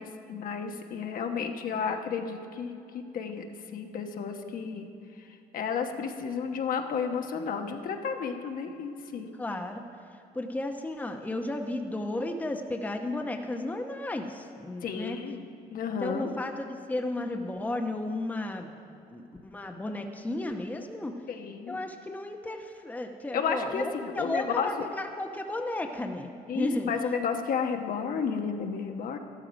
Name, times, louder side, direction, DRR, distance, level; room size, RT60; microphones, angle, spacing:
voice 1, 0.0-3.5 3.7-4.9 5.2-9.3 14.8-15.5 15.7-16.3 21.3-21.8 23.3-24.7 26.5-29.2, left 6 dB, 55° left, 4 dB, 1.1 m, -32 dB
voice 2, 9.4-9.8 10.3-15.2 16.0-21.1 21.7-26.3 26.5-27.0, left 2 dB, 10° left, 4 dB, 0.9 m, -34 dB
13.0 x 12.5 x 5.1 m, 2.7 s
cardioid pair, 110°, 17 cm